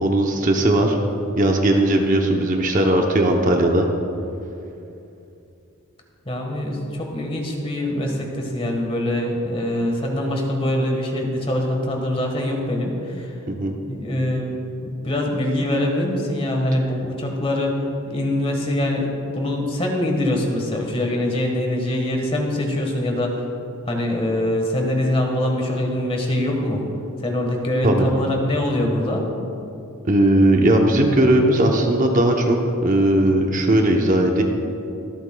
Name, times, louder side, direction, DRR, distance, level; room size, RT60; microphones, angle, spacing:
voice 1, 0.0-1.0 1.4-3.9 13.5-13.8 27.8-28.1 30.0-34.4, right 1 dB, 40° right, 2 dB, 0.7 m, -18 dB
voice 2, 6.2-17.7 18.0-23.5 23.8-26.8 27.2-29.3, left 1 dB, 25° left, 1 dB, 1.4 m, -24 dB
24.0 x 8.1 x 2.3 m, 2.8 s
head